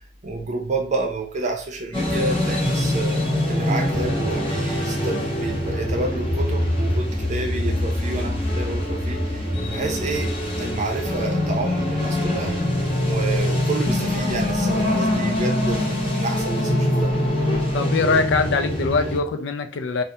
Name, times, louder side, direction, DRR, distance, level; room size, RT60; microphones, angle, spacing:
voice 1, 0.2-12.6 13.0-17.1, right 2 dB, 40° right, 0.5 m, -29 dB
sound 1, 1.9-19.2, left 1 dB, 30° left, 0.7 m, -23 dB
voice 2, 17.7-20.0, left 4 dB, 70° left, 0.4 m, -22 dB
2.3 x 2.1 x 2.7 m
head